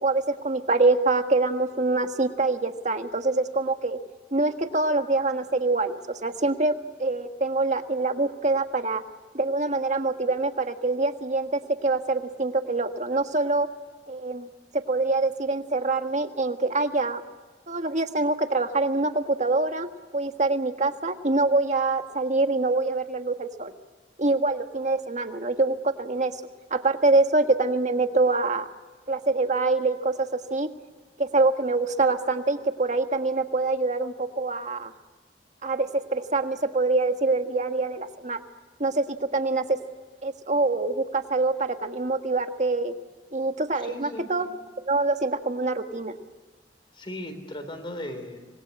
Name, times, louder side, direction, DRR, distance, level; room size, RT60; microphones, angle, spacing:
voice 1, 0.0-4.0 4.3-6.7 7.0-9.0 9.3-13.7 14.1-14.5 14.7-17.2 17.7-23.7 24.2-26.3 26.7-28.7 29.1-30.7 31.2-34.9 35.6-38.4 38.8-39.8 40.2-42.9 43.3-44.5 44.8-46.2, right 3 dB, 45° right, 7 dB, 1.6 m, -25 dB
voice 2, 43.7-44.3 46.9-48.5, left 1 dB, 30° left, 7 dB, 3.8 m, -37 dB
26.0 x 21.5 x 9.6 m, 1.4 s
head